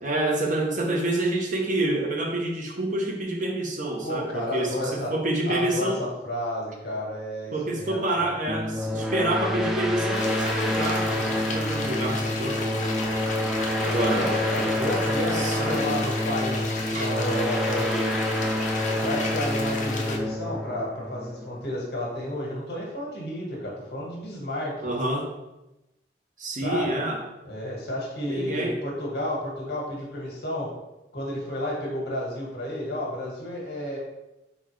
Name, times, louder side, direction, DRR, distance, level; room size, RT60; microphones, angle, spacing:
voice 1, 0.0-6.0 7.5-12.6 13.8-14.3 15.3-16.0 16.9-17.1 24.8-25.3 26.4-27.2 28.3-28.8, right 1 dB, 45° right, 1 dB, 0.7 m, -28 dB
voice 2, 4.0-5.1 5.5-8.3 14.1-18.2 18.9-24.8 26.6-26.9 27.4-30.7 31.1-34.0, left 1 dB, 65° left, -3 dB, 1.5 m, -31 dB
sound 1, 8.5-21.8, left 1 dB, ahead, 0.4 m, -27 dB
sound 2, 10.1-20.2, left 3 dB, 45° left, 0.6 m, -34 dB
4.1 x 4.0 x 3.1 m, 0.96 s
head